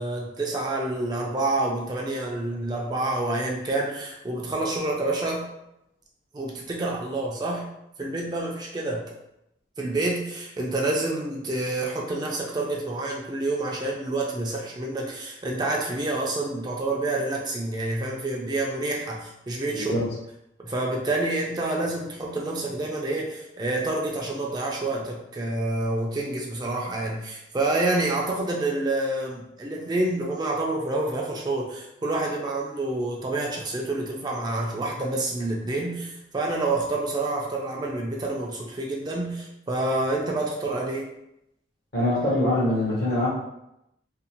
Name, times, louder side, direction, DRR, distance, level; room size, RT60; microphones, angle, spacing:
voice 1, 0.0-5.5 6.3-7.7 8.0-9.0 9.8-19.9 20.6-41.1, right 2 dB, 25° right, -1 dB, 0.3 m, -28 dB
voice 2, 19.7-20.0 41.9-43.3, left 1 dB, 70° left, -8 dB, 0.8 m, -23 dB
2.6 x 2.0 x 2.8 m, 0.83 s
head